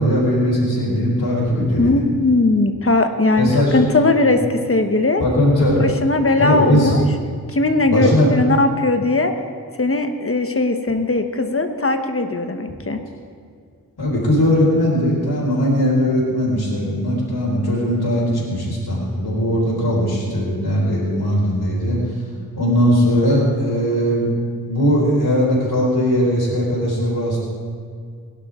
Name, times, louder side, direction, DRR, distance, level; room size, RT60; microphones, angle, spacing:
voice 1, 0.0-2.0 3.4-3.8 5.2-5.8 6.4-6.9 7.9-8.3 14.0-22.0 22.5-24.3 24.7-27.5, equal, 80° left, -5 dB, 4.4 m, -19 dB
voice 2, 1.8-4.4 4.7-5.2 5.8-7.0 7.5-9.3 9.8-13.0, left 2 dB, 35° left, 6 dB, 1.1 m, -19 dB
21.5 x 11.5 x 3.7 m, 2.1 s
wide cardioid pair, 100°, 37 cm